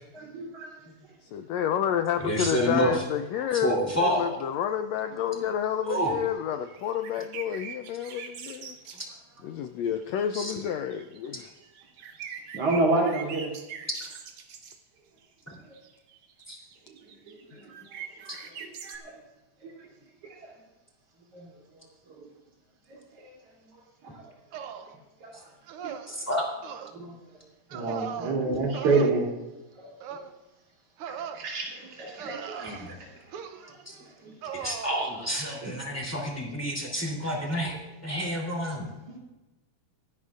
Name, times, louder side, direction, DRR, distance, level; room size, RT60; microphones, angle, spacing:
voice 1, 0.2-0.7 12.5-13.5 17.3-17.7 18.3-19.1 19.6-19.7 20.2-20.5 22.1-22.3 22.9-23.3 24.2-24.3 25.2-25.3 25.8-25.9 26.9-27.1 27.7-29.3 29.8-30.2 31.3-33.7 34.0-34.3 35.6-35.7 37.1-37.3 37.7-37.8 38.8-39.2, right 3 dB, 50° right, -2 dB, 4.1 m, -30 dB
voice 2, 1.2-9.0 9.4-11.5, left 9 dB, 80° left, 8 dB, 1.5 m, -30 dB
voice 3, 2.2-2.9 3.6-4.3 5.9-6.2 10.3-10.5 16.5-16.6 26.1-26.4 32.6-32.9 34.5-37.7 38.0-38.8, equal, 5° left, -2 dB, 2.8 m, -28 dB
sound 1, 5.9-6.3 6.7-9.1 10.0-10.1 10.3-14.8 15.5-19.0, right 7 dB, 70° right, 2.5 m, -43 dB
sound 2, 24.5-24.9 25.7-26.1 26.6-26.9 27.7-28.4 28.7-29.1 30.0-30.3 31.0-31.4 32.2-32.9 33.3-33.7 34.4-34.9, right 8 dB, 90° right, 1.2 m, -38 dB
24.5 x 11.5 x 2.5 m, 1.1 s
omnidirectional pair, 3.6 m